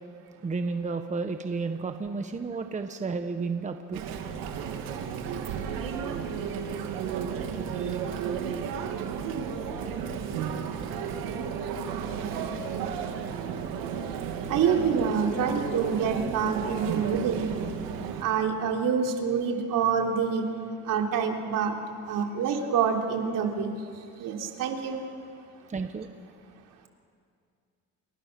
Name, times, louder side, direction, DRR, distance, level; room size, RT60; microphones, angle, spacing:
voice 1, 0.4-4.0 7.7-7.9 25.7-26.1, right 4 dB, 20° right, 7 dB, 1.2 m, -32 dB
Chatter, 3.9-18.2, right 7 dB, 90° right, 2.7 m, -33 dB
voice 2, 14.5-17.5 18.2-20.4 20.8-21.8 22.1-23.7 24.2-25.1, right 6 dB, 70° right, 2 dB, 3.5 m, -26 dB
29.0 x 27.5 x 6.9 m, 2.3 s
cardioid pair, 125°, 34 cm